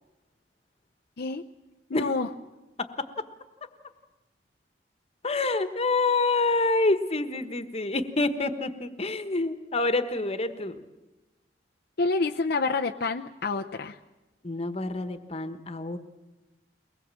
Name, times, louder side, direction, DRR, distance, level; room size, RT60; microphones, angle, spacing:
voice 1, 1.9-2.3 12.0-14.0, left 3 dB, 65° left, 4 dB, 0.7 m, -28 dB
voice 2, 5.2-10.8 14.4-16.0, left 3 dB, 35° left, 10 dB, 1.3 m, -27 dB
23.0 x 20.0 x 7.5 m, 1.1 s
head